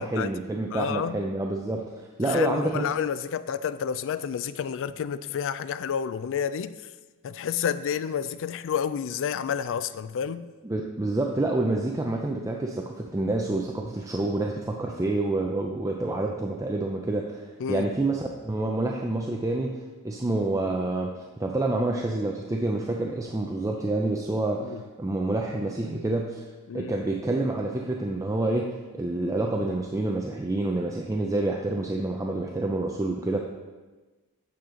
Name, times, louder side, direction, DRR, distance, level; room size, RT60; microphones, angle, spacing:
voice 1, 0.0-1.9 2.2-2.9 10.6-19.8 20.0-21.1 21.4-26.4 26.7-33.4, right 2 dB, 15° right, 0.5 m, -28 dB
voice 2, 0.7-1.2 2.2-6.7 7.2-10.5 17.6-17.9 24.6-24.8 26.7-26.9, left 7 dB, 60° left, 0.4 m, -30 dB
8.6 x 6.6 x 3.8 m
head